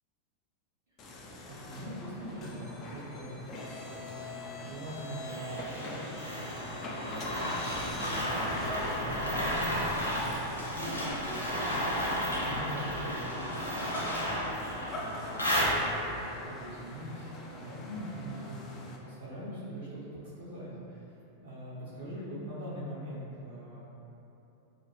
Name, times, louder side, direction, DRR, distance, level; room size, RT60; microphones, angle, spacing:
sound 1, 1.0-19.0, left 1 dB, 35° left, 0.3 m, -43 dB
voice 1, 1.1-3.4 3.8-11.6 12.2-14.2 14.8-21.0 21.4-23.8, equal, 55° right, -11 dB, 0.6 m, -43 dB
sound 2, 5.2-16.2, equal, 85° left, 0.6 m, -33 dB
2.7 x 2.2 x 2.6 m, 3.0 s
figure-of-eight pair, 90°, 0 cm